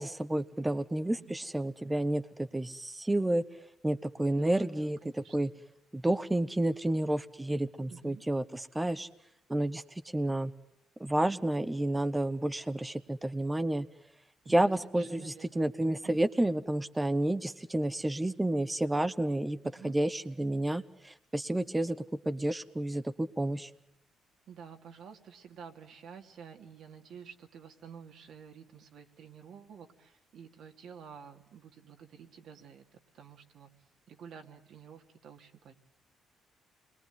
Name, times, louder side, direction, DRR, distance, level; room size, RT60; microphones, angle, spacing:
voice 1, 0.0-3.4 3.8-5.5 5.9-9.1 9.5-10.5 11.0-13.9 14.5-19.6 19.8-23.7, right 1 dB, 10° right, 11 dB, 1.0 m, -30 dB
voice 2, 4.4-5.5 7.9-8.2 14.4-16.2 19.6-20.0 24.5-32.8 33.1-33.7 34.1-35.7, right 7 dB, 70° right, 5 dB, 2.6 m, -51 dB
28.0 x 22.0 x 9.4 m, 0.83 s
cardioid pair, 90°, 0 cm